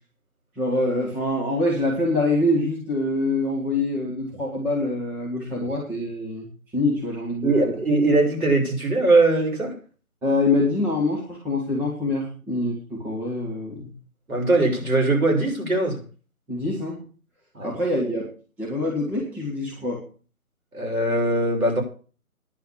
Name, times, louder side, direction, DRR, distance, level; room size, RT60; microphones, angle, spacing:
voice 1, 0.6-6.5 6.7-7.7 10.2-13.9 16.5-17.0 17.6-18.3 18.6-20.0, left 2 dB, 5° right, 1.3 m, -25 dB
voice 2, 7.4-9.7 14.3-16.0 17.5-17.7 20.7-21.8, right 2 dB, 75° right, 6.6 m, -21 dB
10.0 x 9.3 x 7.2 m
figure-of-eight pair, 150°, 43 cm